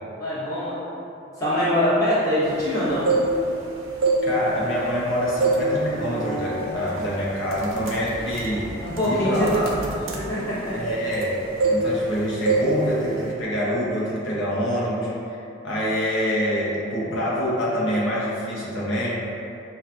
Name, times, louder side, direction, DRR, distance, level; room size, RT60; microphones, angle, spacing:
voice 1, 0.2-0.8 1.4-3.1 8.8-9.5 9.8-9.9 10.1-10.8, left 1 dB, 15° left, -11 dB, 1.0 m, -23 dB
sound 1, 2.8-3.6 3.9-5.0 5.4-5.7 6.1-6.4 7.0-7.1 7.5-11.3 11.6-12.2 12.5-12.7 13.0-13.3, right 3 dB, 85° right, 0.5 m, -24 dB
voice 2, 4.2-8.7 9.0-9.7 10.7-11.4 11.7-19.1, equal, 70° left, -6 dB, 0.7 m, -26 dB
sound 2, 4.7-10.4, right 1 dB, 40° right, 0.6 m, -38 dB
5.7 x 2.4 x 2.5 m, 2.8 s
head